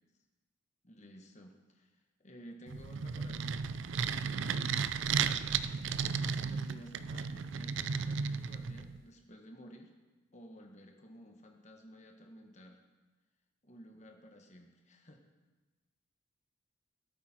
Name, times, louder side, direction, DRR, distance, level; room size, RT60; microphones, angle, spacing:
voice 1, 0.8-3.6 6.4-9.9 10.3-12.8 13.6-15.2, equal, 35° left, 2 dB, 1.4 m, -54 dB
sound 1, 2.7-9.0, right 6 dB, 60° right, 0.4 m, -34 dB
17.0 x 8.4 x 4.4 m, 1.2 s
head